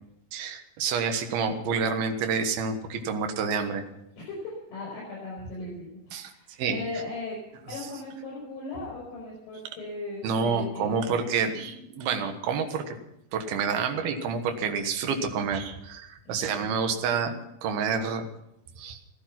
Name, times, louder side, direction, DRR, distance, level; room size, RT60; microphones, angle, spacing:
voice 1, 0.3-3.8 6.1-6.3 6.6-6.8 10.2-13.0 13.3-18.3 18.8-19.0, right 5 dB, 70° right, 6 dB, 3.0 m, -28 dB
voice 2, 4.2-11.2 16.3-16.7, left 2 dB, 55° left, -4 dB, 6.9 m, -38 dB
15.0 x 13.5 x 5.9 m, 0.83 s
omnidirectional pair, 4.9 m